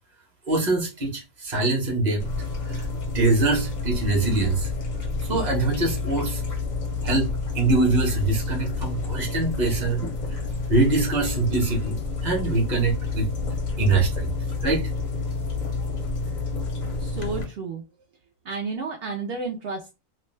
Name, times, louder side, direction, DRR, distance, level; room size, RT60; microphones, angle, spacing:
voice 1, 0.5-2.2 2.7-2.8 3.1-4.7 5.3-6.4 7.0-10.1 10.7-13.3 13.8-14.3 14.6-14.9, right 2 dB, 35° right, 0.9 m, -23 dB
sound 1, 2.2-17.4, left 3 dB, 50° left, 0.5 m, -29 dB
voice 2, 17.0-17.8 18.4-19.9, right 4 dB, 65° right, 0.6 m, -31 dB
2.5 x 2.1 x 3.1 m
omnidirectional pair, 1.5 m